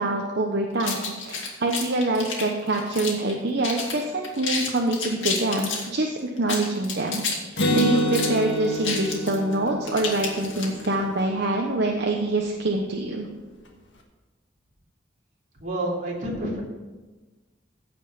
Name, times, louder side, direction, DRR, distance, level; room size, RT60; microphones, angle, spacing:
voice 1, 0.0-13.3, right 2 dB, 60° right, 1 dB, 1.0 m, -25 dB
sound 1, 0.8-3.3 3.6-4.0 4.2-5.9 6.4-10.9, left 5 dB, 90° left, 2.4 m, -30 dB
Acoustic guitar, 7.6-11.2, equal, 70° left, 1.7 m, -28 dB
voice 2, 15.6-16.6, right 1 dB, 45° right, -3 dB, 2.9 m, -29 dB
15.5 x 5.4 x 5.7 m, 1.2 s
head